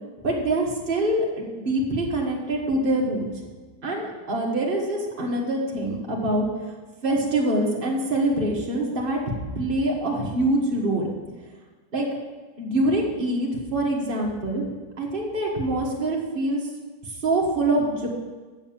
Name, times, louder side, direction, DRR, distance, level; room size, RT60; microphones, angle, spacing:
voice 1, 0.2-3.3 3.8-6.7 7.0-9.2 9.6-11.1 11.9-12.1 12.6-14.6 15.0-16.6 17.2-18.1, right 1 dB, 30° right, -1 dB, 1.6 m, -25 dB
7.0 x 6.9 x 7.3 m, 1.3 s
omnidirectional pair, 1.9 m